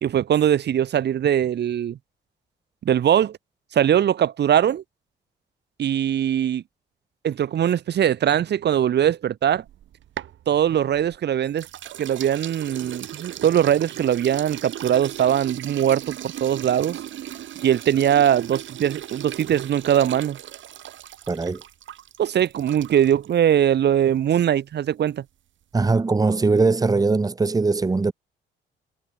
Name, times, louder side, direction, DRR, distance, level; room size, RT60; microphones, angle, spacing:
voice 1, 0.0-2.0 2.8-3.4 3.7-4.8 5.8-6.6 7.2-9.6 10.5-11.7 12.0-17.0 17.6-20.4 22.2-25.2, right 10 dB, 60° right, 1.2 m, -21 dB
sound 1, 9.6-11.2 11.6-23.3, right 11 dB, 75° right, 4.9 m, -37 dB
voice 2, 21.3-21.6 25.7-28.1, right 3 dB, 20° right, 1.1 m, -20 dB
cardioid pair, 90°, 20 cm